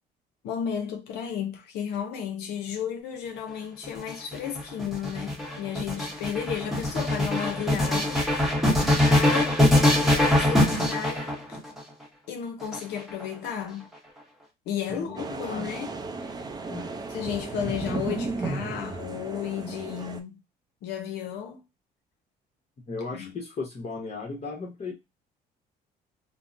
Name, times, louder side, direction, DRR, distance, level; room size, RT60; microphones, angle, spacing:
voice 1, 0.4-8.3 8.6-9.6 10.1-11.6 12.3-13.9 14.7-15.9 16.2-16.3 17.1-20.4 20.8-21.6 23.1-23.4, left 8 dB, 80° left, 0.6 m, -33 dB
sound 1, 3.9-11.8 12.6-13.5, left 1 dB, ahead, 0.9 m, -23 dB
voice 2, 14.9-15.8 16.7-17.0 22.9-24.9, left 3 dB, 40° left, 0.9 m, -36 dB
sound 2, 15.2-20.2, right 3 dB, 25° right, 0.4 m, -34 dB
3.6 x 2.0 x 2.5 m
cardioid pair, 110°, 17 cm